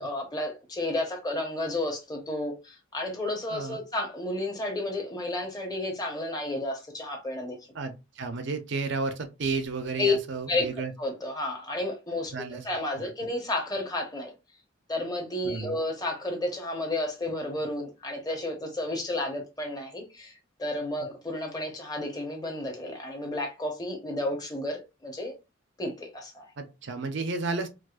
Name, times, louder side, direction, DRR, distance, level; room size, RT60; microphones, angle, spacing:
voice 1, 0.0-7.6 10.0-10.1 10.5-10.7 11.0-12.3 12.6-14.3 14.9-20.3 20.6-25.3 25.8-26.5, left 2 dB, 20° left, 0.9 m, -32 dB
voice 2, 7.7-10.9 12.3-12.7 13.0-13.1 15.4-15.8 26.6-27.7, right 4 dB, 65° right, 0.6 m, -32 dB
4.7 x 2.1 x 2.4 m
head